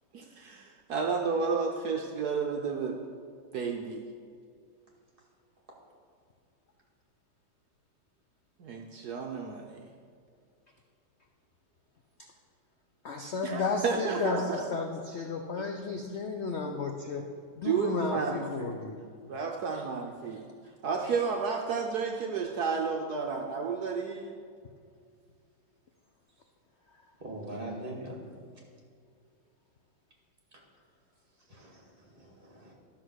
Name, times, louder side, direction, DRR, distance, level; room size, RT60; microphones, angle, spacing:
voice 1, 0.1-3.0 3.5-4.0 8.6-9.9 13.4-14.6 15.6-15.7 17.6-18.8 19.3-20.5 20.8-24.4, right 5 dB, 65° right, 2 dB, 1.2 m, -32 dB
voice 2, 13.0-17.2 17.6-19.0 19.7-19.8, left 4 dB, 75° left, 3 dB, 0.6 m, -33 dB
voice 3, 27.2-28.2 31.5-32.7, right 1 dB, 30° right, -2 dB, 2.2 m, -42 dB
12.0 x 6.2 x 6.3 m, 2.3 s
omnidirectional pair, 2.1 m